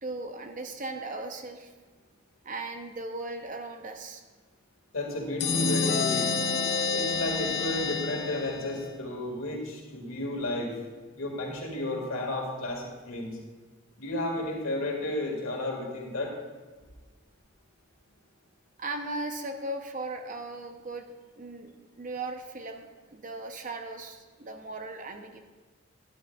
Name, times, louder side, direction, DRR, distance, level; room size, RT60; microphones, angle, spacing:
voice 1, 0.0-1.7 2.4-4.2 18.8-21.7 22.0-25.4, right 2 dB, 35° right, 5 dB, 0.6 m, -37 dB
voice 2, 4.9-6.3 6.9-10.7 11.1-13.4 14.0-16.4, left 1 dB, 75° left, 0 dB, 1.9 m, -32 dB
sound 1, 5.4-9.0, left 4 dB, 50° left, 0.6 m, -28 dB
12.0 x 11.0 x 2.3 m, 1.3 s
head